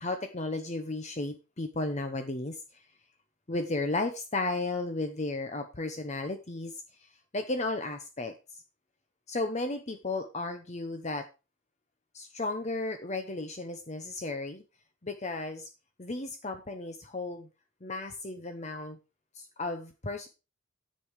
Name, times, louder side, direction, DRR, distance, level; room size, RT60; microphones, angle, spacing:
voice 1, 0.0-2.8 3.5-6.8 7.3-8.6 9.3-11.3 12.1-14.6 15.0-15.7 16.0-17.5 17.8-19.0 19.3-20.3, left 2 dB, 35° left, 7 dB, 1.0 m, -34 dB
10.5 x 7.8 x 4.9 m, 0.31 s
head